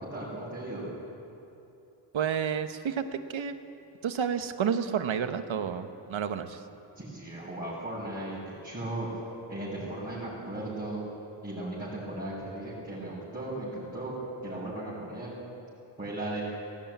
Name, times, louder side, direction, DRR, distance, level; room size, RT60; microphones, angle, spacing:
voice 1, 0.1-0.9 6.9-9.1 9.5-11.0 11.4-14.1 14.4-15.3 16.0-16.4, right 1 dB, 20° right, -9 dB, 6.0 m, -36 dB
voice 2, 2.1-3.0 3.3-3.5 4.0-6.6, right 7 dB, 80° right, 9 dB, 1.3 m, -30 dB
17.0 x 16.5 x 9.4 m, 2.9 s
wide cardioid pair, 145°, 47 cm